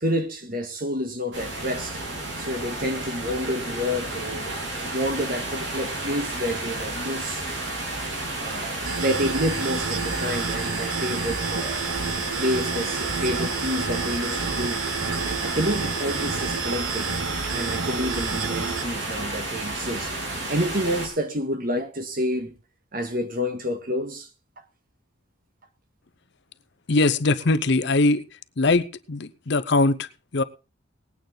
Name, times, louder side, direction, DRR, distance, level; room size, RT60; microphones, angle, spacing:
voice 1, 0.0-7.5 8.4-11.9 12.4-14.8 15.4-17.1 17.4-20.2 20.5-22.6 22.9-24.3, equal, 45° right, 1.7 m, -29 dB
sound 1, 1.3-21.1, right 2 dB, 60° right, 3.9 m, -31 dB
sound 2, 8.8-18.8, right 5 dB, 90° right, 1.3 m, -30 dB
voice 2, 26.9-28.2 28.6-30.4, left 2 dB, 55° left, 0.7 m, -21 dB
19.5 x 9.1 x 3.9 m
head